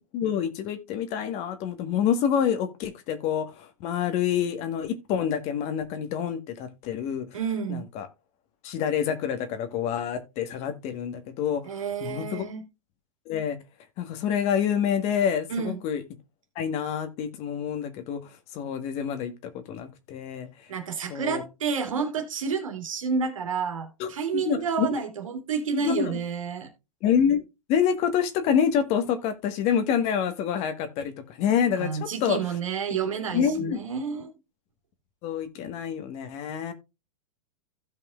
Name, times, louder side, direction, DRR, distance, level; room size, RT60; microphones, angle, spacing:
voice 1, 0.1-7.3 7.7-8.1 8.6-12.5 13.3-13.6 14.0-16.0 16.5-18.2 18.5-19.3 19.7-20.5 21.1-21.4 24.0-24.9 25.8-26.2 27.0-27.4 27.7-32.4 33.3-33.8 35.2-36.7, left 8 dB, 40° left, 1.5 m, -27 dB
voice 2, 7.3-7.9 11.6-12.7 15.5-15.8 20.7-26.7 31.8-34.3, right 6 dB, 70° right, 2.5 m, -30 dB
16.0 x 5.3 x 2.4 m
hypercardioid pair, 110°, 18 cm